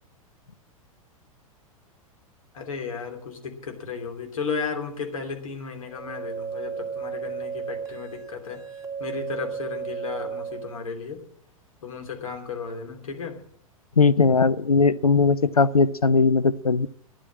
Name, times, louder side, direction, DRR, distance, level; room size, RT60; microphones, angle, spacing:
voice 1, 2.5-8.6 9.0-11.2 11.8-13.4, left 5 dB, 70° left, 3 dB, 3.0 m, -34 dB
sound 1, 5.9-10.8, right 6 dB, 15° right, 2.7 m, -34 dB
voice 2, 14.0-16.9, left 4 dB, 90° left, 16 dB, 0.5 m, -19 dB
12.5 x 10.5 x 7.3 m, 0.66 s
figure-of-eight pair, 95°, 18 cm